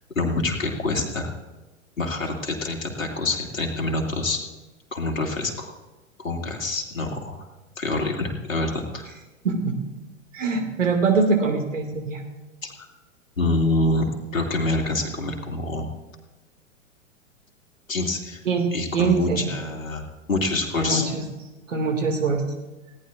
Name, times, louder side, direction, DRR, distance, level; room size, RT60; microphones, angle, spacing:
voice 1, 0.2-1.3 2.0-4.4 4.9-5.7 6.2-7.5 7.8-9.1 12.6-12.9 13.4-14.1 14.3-15.9 17.9-18.4 18.7-21.1, left 2 dB, 75° left, 1 dB, 2.4 m, -26 dB
voice 2, 10.3-12.2 18.5-19.4 20.8-21.2 21.7-22.4, right 4 dB, 70° right, 4 dB, 2.2 m, -23 dB
20.5 x 17.0 x 2.5 m, 1.1 s
figure-of-eight pair, 100°, 40 cm